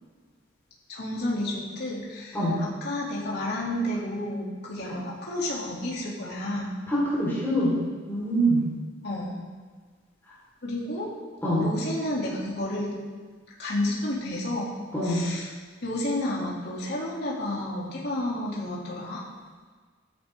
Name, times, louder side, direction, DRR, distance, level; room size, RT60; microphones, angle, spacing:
voice 1, 0.9-6.8 9.0-9.4 10.6-11.1 11.6-12.9 13.6-14.7 15.0-15.5 15.8-19.2, left 1 dB, 55° left, -5 dB, 3.2 m, -31 dB
voice 2, 6.9-7.7 8.1-8.6 11.4-11.7 14.9-15.3, right 1 dB, 10° left, -8 dB, 4.8 m, -24 dB
16.0 x 11.0 x 3.9 m, 1.5 s
head